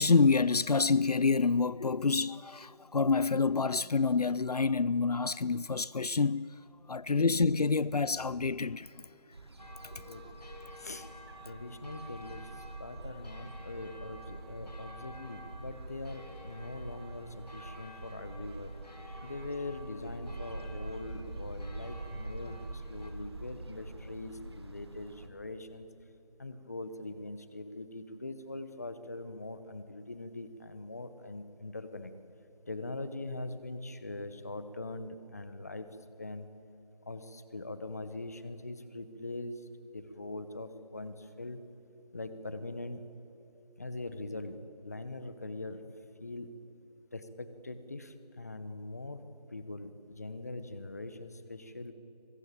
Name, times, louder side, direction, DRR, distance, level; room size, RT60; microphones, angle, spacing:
voice 1, 0.0-6.6 6.9-9.1 9.8-10.1, left 4 dB, 70° left, 0.5 m, -27 dB
sound 1, 9.3-25.3, right 2 dB, 40° right, 2.0 m, -45 dB
sound 2, 9.6-23.1, left 1 dB, 90° left, 5.4 m, -52 dB
voice 2, 10.8-11.1 11.4-12.5 12.8-18.7 19.2-25.9 26.4-32.1 32.7-35.9 36.2-36.5 37.1-39.7 39.9-41.6 42.1-43.0 43.8-44.6 44.8-45.8 46.2-46.5 47.1-49.2 49.5-51.9, left 2 dB, 25° left, 1.0 m, -42 dB
23.5 x 20.5 x 9.0 m
figure-of-eight pair, 170°, 21 cm